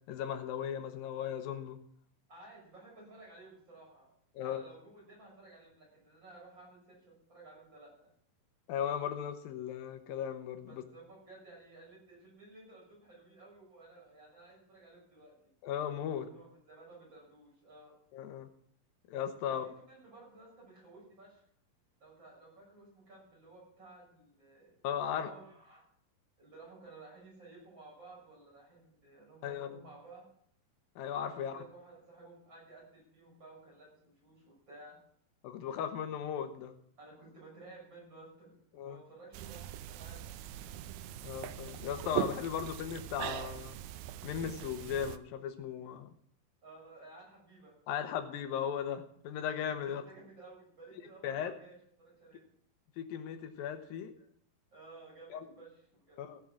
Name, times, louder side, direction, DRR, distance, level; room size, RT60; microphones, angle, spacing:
voice 1, 0.1-1.8 4.3-4.6 8.7-10.8 15.6-16.3 18.1-18.5 19.1-19.7 24.8-25.3 29.4-29.8 31.0-31.6 35.4-36.7 38.7-39.0 41.2-43.8 44.2-46.1 47.9-50.0 51.2-51.5 53.0-54.1 55.3-55.5 56.2-56.4, left 9 dB, 80° left, 8 dB, 2.9 m, -37 dB
voice 2, 2.3-4.1 4.4-8.1 10.7-15.5 16.1-17.9 19.5-21.4 22.0-24.9 25.1-25.9 26.4-30.3 31.2-35.0 37.0-40.3 46.6-47.8 49.7-52.5 54.7-56.3, right 2 dB, 30° right, -3 dB, 7.1 m, -55 dB
sound 1, 39.3-45.2, right 12 dB, 90° right, 2.5 m, -41 dB
15.5 x 7.4 x 7.3 m, 0.63 s
omnidirectional pair, 4.2 m